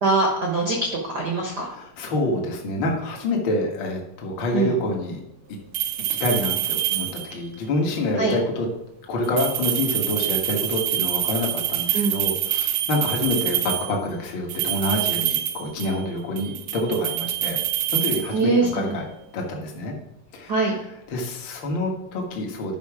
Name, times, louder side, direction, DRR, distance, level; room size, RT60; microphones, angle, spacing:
voice 1, 0.0-1.7 4.5-4.7 8.2-8.3 11.9-12.1 18.3-19.0 20.5-20.8, right 3 dB, 50° right, 0 dB, 1.2 m, -22 dB
voice 2, 1.7-5.2 6.2-8.7 9.1-17.6 17.9-19.1 19.3-19.9 20.3-20.5 21.1-22.7, left 1 dB, 45° left, 0 dB, 1.8 m, -27 dB
sound 1, 5.7-7.5 9.2-14.0 14.5-16.1 16.4-18.8, right 13 dB, 75° right, 1.7 m, -26 dB
10.5 x 5.5 x 5.0 m, 0.83 s
omnidirectional pair, 3.8 m